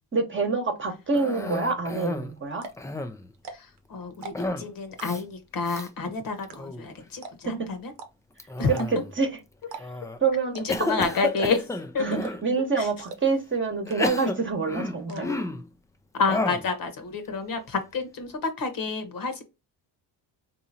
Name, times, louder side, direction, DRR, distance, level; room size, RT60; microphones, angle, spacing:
voice 1, 0.1-2.7 7.5-7.7 8.7-9.3 10.2-10.9 12.0-15.3, right 4 dB, 30° right, 1.0 m, -26 dB
Cough, 1.1-2.3 2.7-3.3 4.3-4.7 5.0-5.2 5.6-5.9 6.4-6.9 8.4-9.2 9.8-10.2 10.7-12.4 13.1-13.2 13.8-15.7 16.3-16.7, left 2 dB, 10° left, 0.3 m, -31 dB
sound 1, 2.5-2.9 3.3-3.8 4.1-4.6 5.0-5.4 5.8-6.1 6.5-6.6 6.8-6.9 7.2-7.6 8.0-8.1 8.7-9.1 9.6-9.8 10.1-10.2 10.5-10.9 11.3-11.7 12.2-12.6 13.1-13.2 13.5-13.6 13.9-14.3 14.6-15.2, right 5 dB, 85° right, 0.9 m, -40 dB
voice 2, 3.5-7.9 8.6-8.7 10.5-12.2 12.8-12.9 15.1-15.4 16.1-19.4, left 4 dB, 55° left, 1.1 m, -29 dB
3.7 x 2.8 x 2.7 m
cardioid pair, 90°, 42 cm